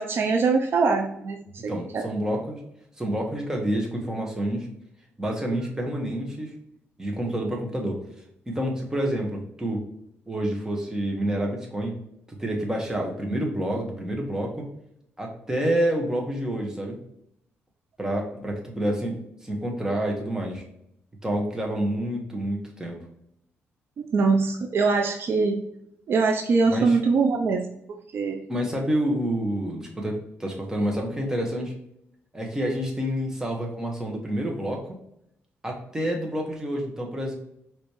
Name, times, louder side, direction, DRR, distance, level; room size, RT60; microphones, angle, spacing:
voice 1, 0.0-2.0 24.0-25.7 26.1-28.4, right 4 dB, 60° right, 4 dB, 0.5 m, -23 dB
voice 2, 1.7-2.6 3.0-4.7 5.2-6.5 7.0-8.0 8.5-9.8 10.3-12.0 12.3-14.7 15.2-17.0 18.0-20.6 21.2-23.0 26.7-27.0 28.5-31.8 32.3-35.0 35.6-37.3, right 1 dB, 10° right, 0 dB, 1.4 m, -28 dB
5.1 x 3.1 x 3.1 m, 0.76 s
cardioid pair, 95°, 5 cm